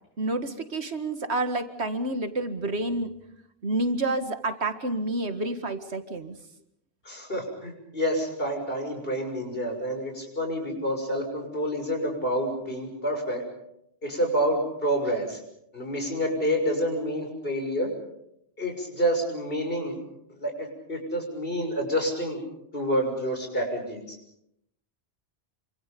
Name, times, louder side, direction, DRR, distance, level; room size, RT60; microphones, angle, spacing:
voice 1, 0.2-3.1 3.6-6.4, right 2 dB, 80° right, 8 dB, 2.2 m, -29 dB
voice 2, 7.0-13.4 14.0-15.4 15.7-17.9 18.6-20.0 20.4-22.4 22.7-24.2, equal, 60° left, 3 dB, 6.7 m, -28 dB
27.5 x 26.0 x 5.3 m, 0.78 s
omnidirectional pair, 1.1 m